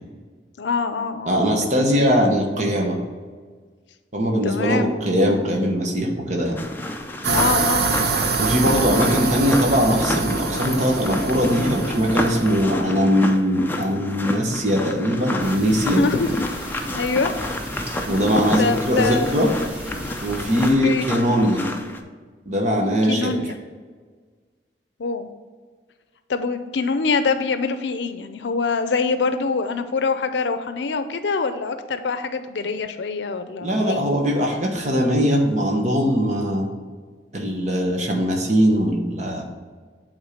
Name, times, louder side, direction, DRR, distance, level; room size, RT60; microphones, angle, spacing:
voice 1, 0.6-2.0 4.4-4.9 7.3-7.9 15.9-16.4 16.9-17.3 18.6-19.4 20.8-21.1 23.0-23.6 25.0-25.3 26.3-34.0, left 4 dB, 90° left, 10 dB, 0.5 m, -24 dB
voice 2, 1.3-3.0 4.1-6.6 8.4-16.0 18.1-19.5 20.2-21.7 22.5-23.3 33.6-36.7 37.3-39.4, equal, 40° right, 1 dB, 1.2 m, -20 dB
sound 1, 6.6-22.0, left 1 dB, 10° left, 0.5 m, -29 dB
sound 2, 7.2-12.6, right 4 dB, 65° right, 0.6 m, -25 dB
sound 3, 15.4-20.7, equal, 10° right, 1.0 m, -37 dB
8.1 x 3.7 x 5.0 m, 1.5 s
head